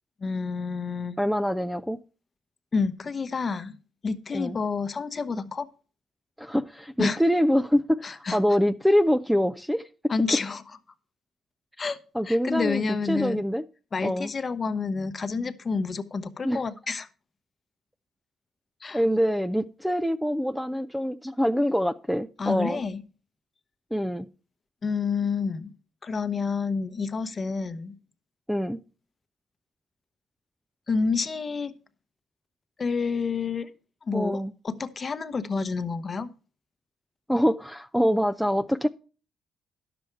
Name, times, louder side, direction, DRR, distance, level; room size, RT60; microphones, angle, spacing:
voice 1, 0.2-1.2 2.7-3.8 4.0-5.7 7.0-7.2 8.0-8.4 10.1-10.6 11.8-12.0 12.2-13.4 13.9-17.1 18.8-19.0 22.4-23.0 24.8-25.7 26.0-28.0 30.9-31.7 32.8-33.7 34.1-36.3, left 5 dB, 35° left, 0.9 m, -29 dB
voice 2, 1.2-2.0 4.3-4.6 6.4-9.9 12.1-12.8 13.1-13.6 14.0-14.3 16.4-16.6 18.9-22.8 23.9-24.2 28.5-28.8 34.1-34.5 37.3-38.9, equal, ahead, 0.4 m, -25 dB
10.5 x 6.9 x 4.6 m
cardioid pair, 90°, 0 cm